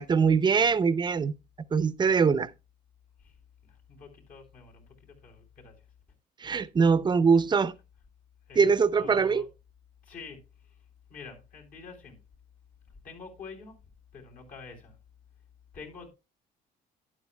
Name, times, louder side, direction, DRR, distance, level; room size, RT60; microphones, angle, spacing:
voice 1, 0.0-1.3 1.7-2.5 6.4-7.7 8.6-9.4, right 5 dB, 25° right, 0.6 m, -23 dB
voice 2, 3.6-5.8 8.5-9.5 10.0-10.8 11.1-12.2 13.0-13.8 14.1-15.0 15.7-16.1, left 4 dB, 55° left, 3.5 m, -47 dB
12.0 x 9.8 x 2.2 m
cardioid pair, 110°, 17 cm